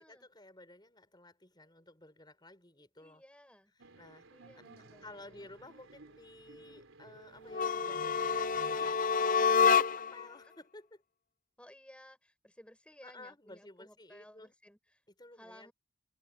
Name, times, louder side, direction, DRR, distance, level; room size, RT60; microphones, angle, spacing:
voice 1, 0.0-3.2 4.0-4.3 4.6-4.7 5.0-11.0 13.0-14.5 15.2-15.7, left 2 dB, 20° left, 5.4 m, -54 dB
voice 2, 3.0-3.7 4.3-5.5 10.4-10.5 11.6-15.0 15.3-15.7, equal, 5° left, 6.7 m, -58 dB
sound 1, 3.8-9.2, right 2 dB, 75° right, 3.7 m, -56 dB
sound 2, 7.5-10.2, left 6 dB, 40° left, 0.6 m, -28 dB
head